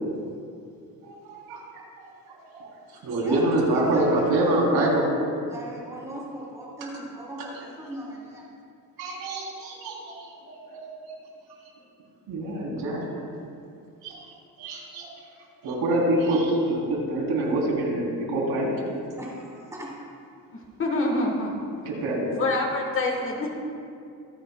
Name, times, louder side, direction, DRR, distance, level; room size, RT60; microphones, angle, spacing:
voice 1, 1.0-1.8 2.3-2.7 3.0-5.1 6.8-6.9 7.4-7.5 9.0-10.8 12.3-13.1 14.0-14.3 14.6-15.1 15.6-18.7 21.8-22.2, right 1 dB, 80° right, -2 dB, 3.2 m, -26 dB
voice 2, 2.9-4.7 5.4-8.5 16.6-16.7 19.2-20.0, right 1 dB, 10° right, -6 dB, 3.1 m, -39 dB
voice 3, 20.5-21.7 22.4-23.5, left 2 dB, 35° left, 1 dB, 1.3 m, -26 dB
25.0 x 10.0 x 2.2 m, 2.5 s
cardioid pair, 170°, 38 cm